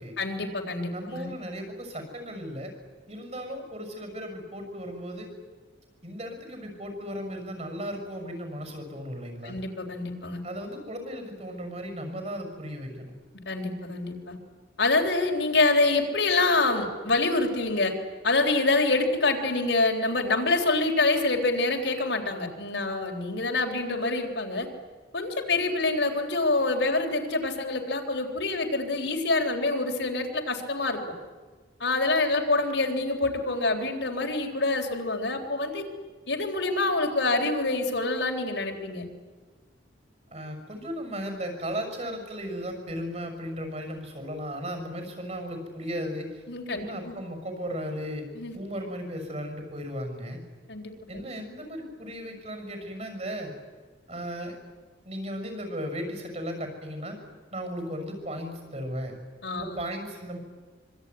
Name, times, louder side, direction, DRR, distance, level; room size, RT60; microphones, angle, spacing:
voice 1, 0.2-1.3 9.4-10.4 13.5-14.4 14.8-18.0 18.2-24.7 25.1-31.0 31.8-35.8 36.3-39.0 46.5-47.2 48.3-48.6 50.7-51.2 59.4-59.8, left 2 dB, 70° left, 2 dB, 3.7 m, -26 dB
voice 2, 0.9-2.7 3.1-5.3 6.0-9.6 10.4-13.1 40.3-46.4 46.7-48.3 48.5-50.4 51.1-53.5 54.1-54.6 55.0-57.2 57.5-59.2 59.5-60.4, equal, 35° right, 5 dB, 6.6 m, -36 dB
25.0 x 24.0 x 9.6 m, 1.4 s
head